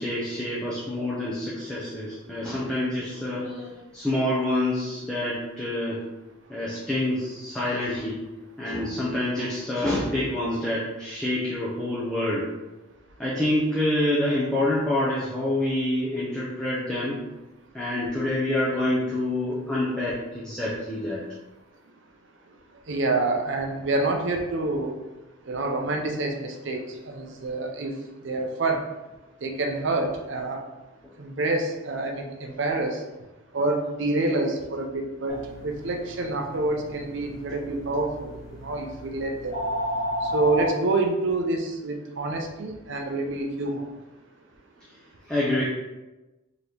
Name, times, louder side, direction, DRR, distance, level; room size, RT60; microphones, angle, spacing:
voice 1, 0.0-6.0 6.5-8.2 8.6-12.5 13.2-17.2 17.7-21.2 44.9-45.0 45.3-45.6, left 1 dB, 5° left, -8 dB, 0.5 m, -27 dB
voice 2, 22.9-24.9 25.5-26.8 27.1-27.9 28.2-28.8 29.4-30.6 31.2-33.0 33.5-35.3 35.6-38.4 38.6-39.6 40.3-43.8, right 2 dB, 60° right, 3 dB, 0.6 m, -27 dB
sound 1, 35.3-40.7, equal, 70° left, 1.4 m, -33 dB
3.8 x 2.9 x 3.3 m, 1.1 s
head